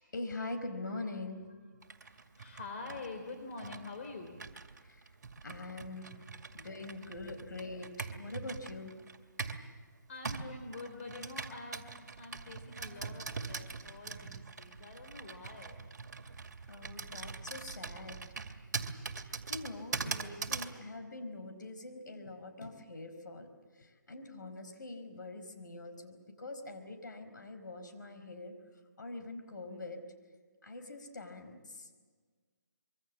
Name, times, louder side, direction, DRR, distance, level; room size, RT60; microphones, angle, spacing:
voice 1, 0.0-1.5 4.8-5.1 5.4-6.1 6.5-9.0 12.9-13.0 16.7-18.2 19.1-28.5 29.0-30.0 30.6-31.9, left 2 dB, 75° left, 7 dB, 4.6 m, -44 dB
Computer keyboard, 1.8-9.7 10.2-20.8, right 4 dB, 60° right, 2.3 m, -43 dB
voice 2, 1.9-4.4 6.0-6.2 10.1-11.9 12.2-15.8, left 3 dB, 40° left, 3 dB, 3.3 m, -46 dB
25.5 x 23.5 x 7.4 m, 1.5 s
hypercardioid pair, 160°, 10 cm